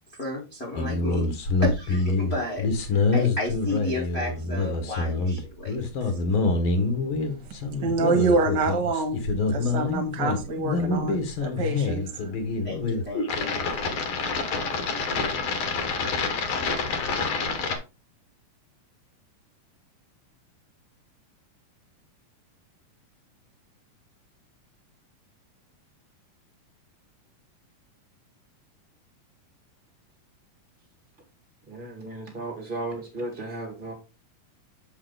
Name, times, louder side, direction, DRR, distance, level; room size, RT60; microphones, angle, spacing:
voice 1, 0.1-1.3 1.6-6.2 12.1-12.4 12.6-13.5, left 2 dB, 35° left, 0 dB, 1.0 m, -33 dB
sound 1, 0.8-17.8, left 3 dB, 60° left, 1.4 m, -26 dB
voice 2, 7.8-9.2 9.5-12.1, right 3 dB, 60° right, 5 dB, 1.1 m, -26 dB
voice 3, 31.7-33.9, right 2 dB, 80° right, 1 dB, 0.4 m, -35 dB
7.3 x 4.8 x 3.8 m, 0.29 s
omnidirectional pair, 3.8 m